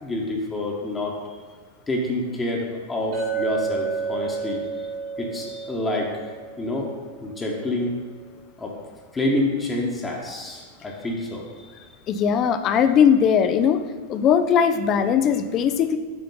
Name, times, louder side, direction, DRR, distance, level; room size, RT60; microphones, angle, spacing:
voice 1, 0.0-1.2 1.9-4.6 5.2-6.1 6.6-6.9 7.2-7.9 8.6-8.7 9.1-11.5, left 1 dB, 15° left, -1 dB, 1.2 m, -27 dB
Chink clink, 3.1-7.6, right 5 dB, 40° right, 1.4 m, -31 dB
voice 2, 12.1-13.8 14.1-16.0, left 7 dB, 35° left, 9 dB, 0.5 m, -19 dB
7.9 x 4.3 x 5.4 m, 1.5 s
figure-of-eight pair, 90°, 0 cm